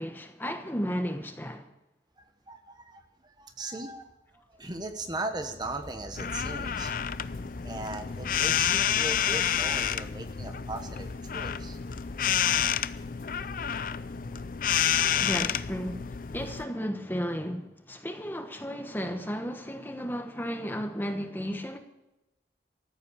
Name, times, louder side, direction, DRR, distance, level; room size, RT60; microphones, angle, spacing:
voice 1, 0.0-1.7 15.2-16.0 16.3-21.8, equal, 10° left, 1.1 m, -34 dB
voice 2, 2.2-4.1 4.3-11.8 14.9-15.3, right 2 dB, 25° right, 1.1 m, -39 dB
sound 1, 5.4-14.5, equal, 30° left, 2.4 m, -50 dB
sound 2, 6.2-16.6, left 9 dB, 50° left, 0.4 m, -29 dB
14.0 x 8.2 x 8.5 m
head